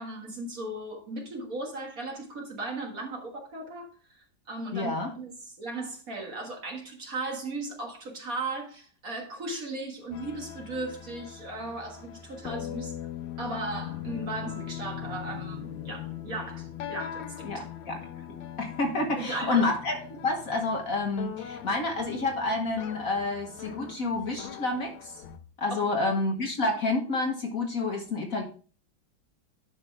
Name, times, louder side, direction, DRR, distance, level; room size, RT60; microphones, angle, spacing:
voice 1, 0.0-3.9 4.5-5.3 5.6-12.9 13.4-17.5 19.2-19.7 25.7-26.0, right 2 dB, 45° right, 2.0 m, -36 dB
voice 2, 4.7-5.1 17.4-18.0 18.6-25.1 25.6-28.4, left 3 dB, 50° left, 1.5 m, -29 dB
sound 1, 10.1-25.4, left 10 dB, 90° left, 1.7 m, -40 dB
11.0 x 5.5 x 3.4 m
omnidirectional pair, 2.2 m